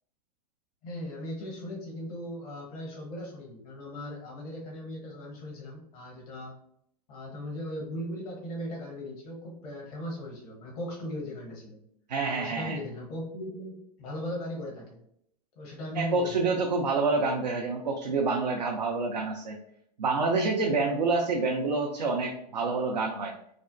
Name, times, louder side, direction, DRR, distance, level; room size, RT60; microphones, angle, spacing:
voice 1, 0.8-6.5 7.1-11.8 12.3-15.0 15.6-16.5 17.2-17.3 18.2-18.3, left 1 dB, 60° left, -1 dB, 1.0 m, -38 dB
voice 2, 12.1-12.8 15.9-19.6 20.0-23.3, right 3 dB, 85° right, 1 dB, 0.4 m, -27 dB
3.2 x 2.1 x 2.5 m, 0.72 s
hypercardioid pair, 90°, 21 cm